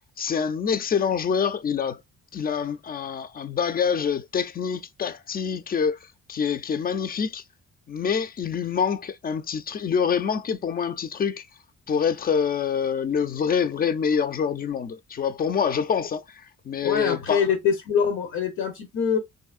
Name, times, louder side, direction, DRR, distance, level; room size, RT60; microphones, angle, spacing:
voice 1, 0.2-2.0 2.3-6.0 6.3-7.4 7.9-11.5 11.9-17.4, left 7 dB, 30° left, 0.4 m, -26 dB
voice 2, 16.8-19.2, left 7 dB, 75° left, 0.8 m, -24 dB
3.0 x 2.6 x 2.4 m
cardioid pair, 90°, 30 cm